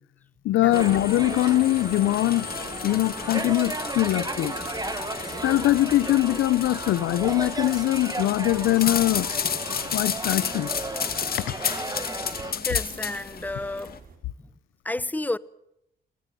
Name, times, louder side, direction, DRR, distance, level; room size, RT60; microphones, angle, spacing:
voice 1, 0.4-2.5 2.8-4.5 5.4-9.3 9.9-10.7 11.3-11.5 12.4-12.6, left 16 dB, 85° left, 0.9 m, -22 dB
sound 1, 0.7-14.0, left 7 dB, 50° left, 2.3 m, -33 dB
sound 2, 0.7-12.5, right 3 dB, 20° right, 2.1 m, -35 dB
sound 3, 0.7-14.2, right 5 dB, 45° right, 4.6 m, -48 dB
voice 2, 12.5-14.0 14.8-15.4, left 2 dB, 10° left, 0.9 m, -31 dB
30.0 x 18.5 x 7.7 m
cardioid pair, 90°, 20 cm